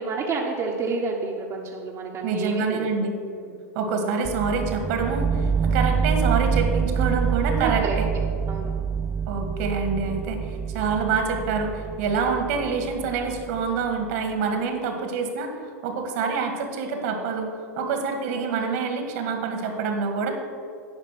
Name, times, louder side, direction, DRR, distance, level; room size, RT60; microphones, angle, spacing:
voice 1, 0.0-2.9 3.3-3.6 7.6-8.0 8.5-8.7, right 4 dB, 35° right, -1 dB, 1.1 m, -29 dB
voice 2, 2.2-3.1 3.7-8.1 9.3-15.5 15.8-20.3, right 5 dB, 60° right, 4 dB, 1.9 m, -26 dB
sound 1, 4.2-14.1, right 6 dB, 10° right, 0.3 m, -26 dB
9.9 x 5.2 x 7.6 m, 2.3 s
hypercardioid pair, 105°, 9 cm